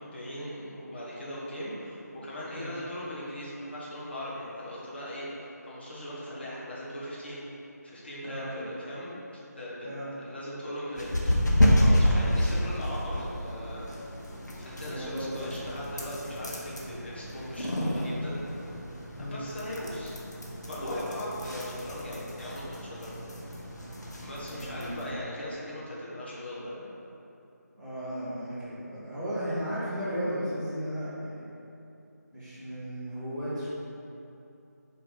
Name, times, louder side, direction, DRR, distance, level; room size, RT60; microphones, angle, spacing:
voice 1, 0.0-7.4 7.8-9.2 9.6-9.9 10.2-13.9 14.6-18.3 19.2-20.1 20.7-23.2 24.2-26.9, left 1 dB, 35° left, -8 dB, 1.2 m, -39 dB
voice 2, 8.2-8.6 9.8-10.1 14.9-15.5 19.1-19.4 24.5-25.1 27.8-31.5 32.3-33.7, equal, ahead, -18 dB, 0.7 m, -35 dB
sound 1, 11.0-25.1, equal, 75° left, 1.1 m, -30 dB
4.8 x 3.9 x 4.9 m, 2.8 s
figure-of-eight pair, 175°, 10 cm